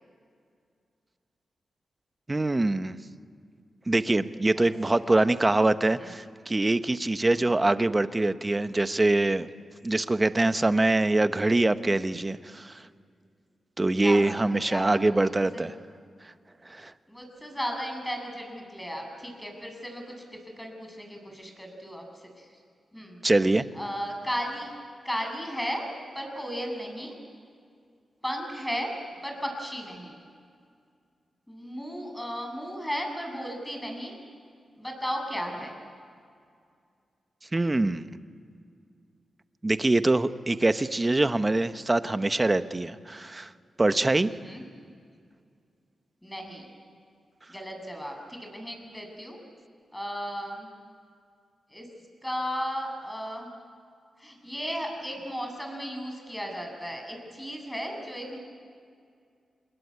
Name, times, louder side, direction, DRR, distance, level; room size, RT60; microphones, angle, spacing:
voice 1, 2.3-3.0 3.9-9.5 9.8-12.8 13.8-15.7 16.7-16.9 23.2-23.7 37.5-38.2 39.6-43.5 43.8-44.3, right 2 dB, 25° right, 11 dB, 1.1 m, -24 dB
voice 2, 4.5-5.6 5.8-6.1 7.2-7.5 14.0-14.4 14.7-15.6 17.1-22.6 22.9-23.2 23.7-24.7 25.0-25.9 26.1-27.2 28.2-28.9 29.2-30.2 31.5-34.1 34.8-35.8 44.3-44.6 46.2-46.7 47.5-49.4 49.9-50.7 51.7-51.9 52.2-53.5 54.2-58.4, equal, 10° left, 3 dB, 7.2 m, -35 dB
27.0 x 20.5 x 9.8 m, 2.3 s
cardioid pair, 60°, 0 cm